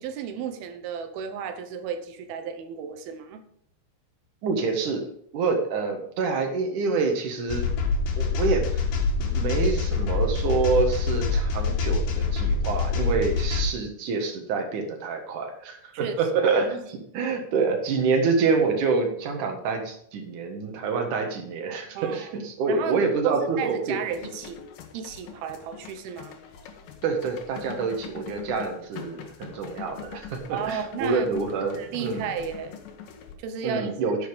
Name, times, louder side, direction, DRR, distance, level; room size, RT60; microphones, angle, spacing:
voice 1, 0.0-3.4 15.9-16.1 21.9-22.4 22.7-24.7 24.9-26.4 30.5-31.3 31.8-32.8 33.4-33.9, right 7 dB, 75° right, 7 dB, 2.4 m, -33 dB
voice 2, 4.4-5.0 5.3-7.7 8.2-8.8 9.2-24.0 27.0-32.2 33.6-34.2, right 4 dB, 55° right, 3 dB, 2.4 m, -27 dB
sound 1, 7.5-13.7, left 4 dB, 60° left, 2.9 m, -25 dB
sound 2, 24.1-33.3, left 7 dB, 75° left, 2.0 m, -43 dB
10.5 x 7.8 x 5.2 m, 0.68 s
omnidirectional pair, 5.7 m